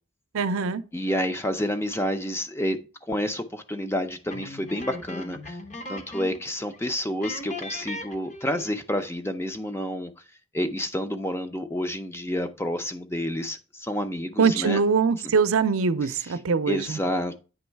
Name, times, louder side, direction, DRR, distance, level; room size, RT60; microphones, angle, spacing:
voice 1, 0.3-0.8 14.4-17.0, right 5 dB, 85° right, 0.5 m, -23 dB
voice 2, 0.9-5.6 5.9-10.1 10.5-14.8 16.3-16.4 16.7-17.3, equal, 10° left, 0.5 m, -29 dB
sound 1, 4.3-6.5 6.7-6.9 7.2-8.8, left 2 dB, 35° left, 0.8 m, -38 dB
8.9 x 3.1 x 4.5 m
head